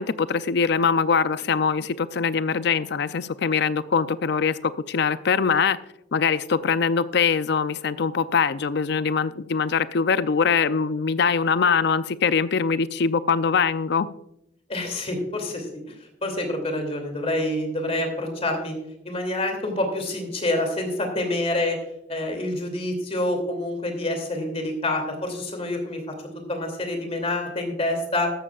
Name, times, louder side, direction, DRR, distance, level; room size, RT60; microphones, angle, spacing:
voice 1, 0.0-5.8 6.1-14.1, left 5 dB, 60° left, 14 dB, 0.5 m, -23 dB
voice 2, 14.7-15.8 16.2-18.7 19.0-21.8 22.1-26.1 26.5-28.3, left 1 dB, 35° left, 3 dB, 2.7 m, -27 dB
13.5 x 13.0 x 2.4 m, 0.82 s
head